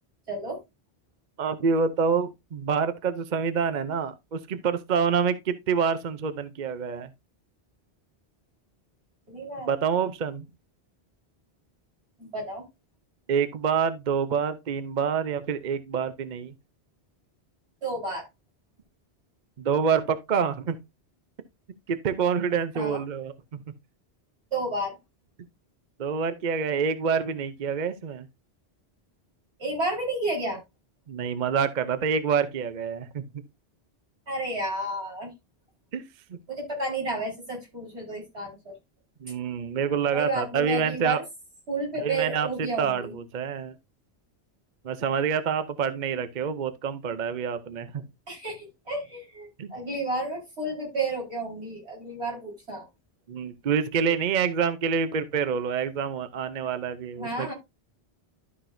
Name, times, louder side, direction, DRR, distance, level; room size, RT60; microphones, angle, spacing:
voice 1, 0.3-0.6 9.3-9.7 12.2-12.6 17.8-18.3 22.7-23.0 24.5-25.0 29.6-30.6 34.3-35.3 36.5-38.8 40.1-41.2 41.7-43.2 48.3-52.8 57.2-57.5, right 2 dB, 85° right, 4.8 m, -31 dB
voice 2, 1.4-7.1 9.6-10.4 13.3-16.5 19.6-20.8 21.9-23.6 26.0-28.3 31.1-33.2 35.9-36.4 39.2-41.2 42.0-43.7 44.8-48.0 49.6-49.7 53.3-57.5, right 6 dB, 50° right, 0.7 m, -27 dB
12.5 x 5.9 x 2.6 m
omnidirectional pair, 1.1 m